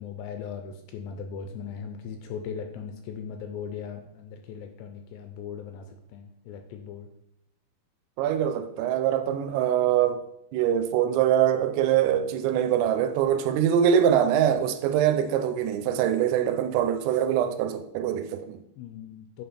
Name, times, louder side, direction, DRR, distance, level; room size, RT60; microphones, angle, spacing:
voice 1, 0.0-7.1 18.8-19.4, left 7 dB, 80° left, 2.5 m, -38 dB
voice 2, 8.2-10.3 10.5-18.6, right 9 dB, 85° right, 2.8 m, -23 dB
8.6 x 3.7 x 4.3 m
omnidirectional pair, 5.2 m